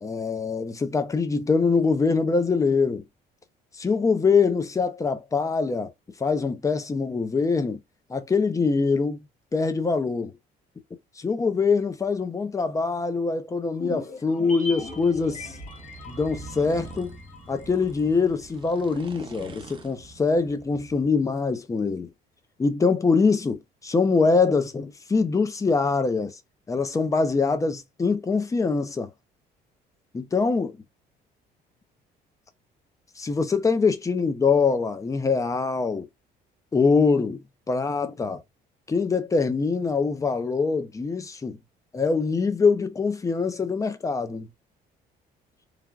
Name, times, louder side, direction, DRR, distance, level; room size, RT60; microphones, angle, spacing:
voice 1, 0.0-3.0 3.8-5.9 6.2-7.8 8.1-9.2 9.5-10.4 11.2-15.5 16.1-17.1 17.5-22.1 22.6-26.4 26.7-29.1 30.1-30.7 33.2-36.1 36.7-37.4 37.7-38.4 38.9-41.6 41.9-44.5, left 4 dB, 20° left, 0.5 m, -24 dB
sound 1, 13.7-18.2 18.5-18.6, left 3 dB, 45° left, 1.1 m, -41 dB
sound 2, 14.8-21.1, right 3 dB, 30° right, 0.7 m, -44 dB
3.2 x 2.2 x 2.4 m
cardioid pair, 110°, 17 cm